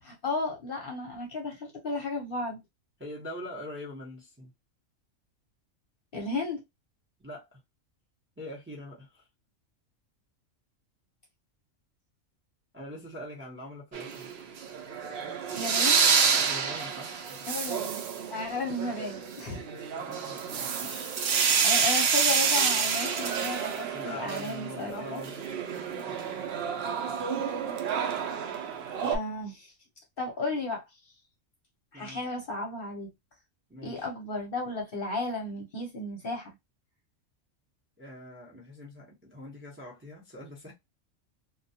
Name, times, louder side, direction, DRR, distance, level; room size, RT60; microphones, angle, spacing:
voice 1, 0.0-2.6 6.1-6.6 15.5-16.1 17.5-18.0 18.3-19.6 20.8-21.1 21.6-25.2 29.1-29.7 30.2-30.8 31.9-33.1 33.8-36.6, left 2 dB, 50° left, 0.8 m, -34 dB
voice 2, 3.0-4.5 7.2-7.6 8.4-9.3 12.7-14.3 16.3-17.5 19.9-20.4 23.9-26.2 31.9-32.2 33.7-34.1 38.0-40.7, left 1 dB, 15° right, 0.5 m, -43 dB
sound 1, 13.9-29.2, right 6 dB, 60° right, 0.7 m, -28 dB
2.3 x 2.2 x 2.7 m
omnidirectional pair, 1.4 m